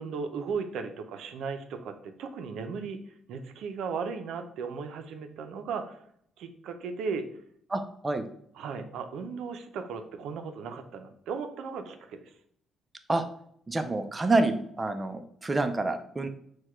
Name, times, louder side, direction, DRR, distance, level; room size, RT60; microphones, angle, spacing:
voice 1, 0.0-3.0 3.3-6.0 6.4-7.3 8.6-12.3, right 5 dB, 80° right, 7 dB, 0.5 m, -36 dB
voice 2, 7.7-8.2 13.1-13.2 13.7-16.3, right 2 dB, 20° right, 7 dB, 0.4 m, -28 dB
4.6 x 2.2 x 4.3 m, 0.67 s
cardioid pair, 90°, 0 cm